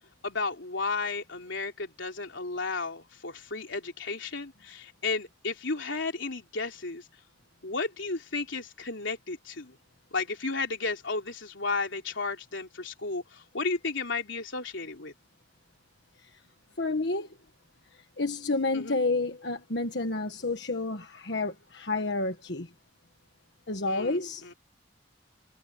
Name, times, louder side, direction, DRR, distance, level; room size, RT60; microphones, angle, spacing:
voice 1, 0.2-7.1 7.6-9.7 10.1-15.1 18.7-19.0 23.9-24.5, left 3 dB, 90° left, 3.6 m, -33 dB
voice 2, 16.8-17.4 17.9-22.7 23.7-24.5, left 2 dB, 65° left, 1.5 m, -30 dB
head